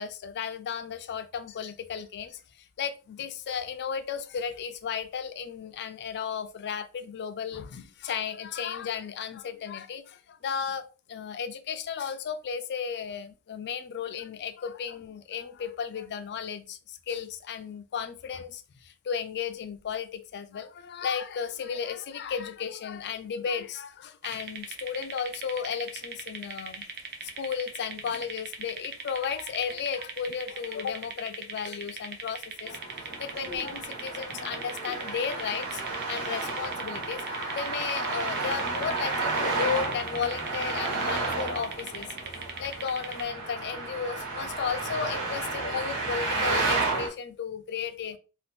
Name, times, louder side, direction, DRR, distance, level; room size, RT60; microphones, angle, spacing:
voice 1, 0.0-26.9 27.2-42.1 42.6-48.2, left 7 dB, 50° left, 0.4 m, -34 dB
sound 1, 24.2-43.3, right 5 dB, 50° right, 0.6 m, -40 dB
Traffic noise roadway noise, 32.7-47.1, right 3 dB, 65° right, 1.3 m, -32 dB
2.7 x 2.4 x 3.5 m
head